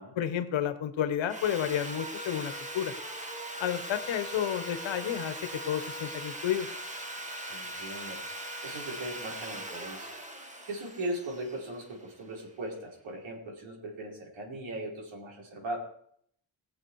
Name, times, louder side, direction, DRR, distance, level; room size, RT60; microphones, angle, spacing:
voice 1, 0.2-2.9 3.6-6.7, left 10 dB, 80° left, 11 dB, 1.3 m, -31 dB
Sawing, 1.3-12.3, right 1 dB, 15° right, 1.6 m, -40 dB
voice 2, 7.5-8.2 8.6-10.2 10.6-15.8, right 1 dB, 85° right, -2 dB, 4.8 m, -39 dB
20.5 x 7.3 x 4.8 m, 0.66 s
wide cardioid pair, 140°, 45 cm